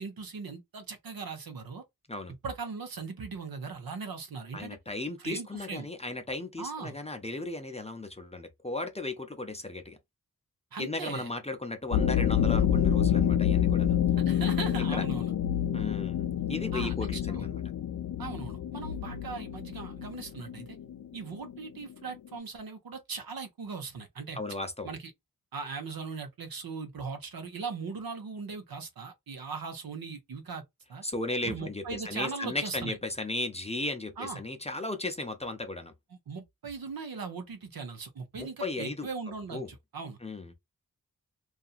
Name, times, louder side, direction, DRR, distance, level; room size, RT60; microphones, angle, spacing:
voice 1, 0.0-1.8 2.4-4.8 5.2-5.9 6.6-7.0 10.7-11.3 14.3-15.3 16.7-17.5 18.2-20.8 21.1-24.4 24.8-25.1 25.5-30.6 30.9-31.0 31.4-33.0 34.2-34.4 36.3-40.2, right 4 dB, 75° right, 0.7 m, -39 dB
voice 2, 4.5-10.0 10.8-14.0 14.9-15.0 15.7-17.6 24.3-24.9 31.0-35.9 38.4-39.1 39.5-39.7 40.2-40.5, left 2 dB, 20° left, 0.5 m, -36 dB
sound 1, 11.9-22.2, left 9 dB, 75° left, 0.5 m, -28 dB
2.8 x 2.4 x 2.4 m
wide cardioid pair, 60°, 36 cm